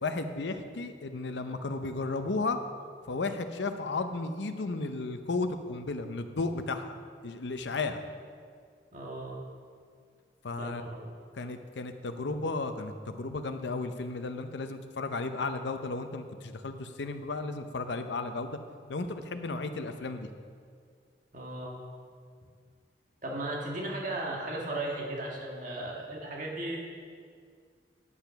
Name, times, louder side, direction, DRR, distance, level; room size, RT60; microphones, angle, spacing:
voice 1, 0.0-2.6 3.1-7.0 7.2-8.0 10.4-10.8 11.3-18.6 18.9-20.3, left 3 dB, 80° left, 8 dB, 0.7 m, -34 dB
voice 2, 8.9-9.4 10.6-11.1 21.3-21.8 23.2-26.8, right 1 dB, 45° right, -2 dB, 1.7 m, -36 dB
9.8 x 6.9 x 5.8 m, 2.1 s
head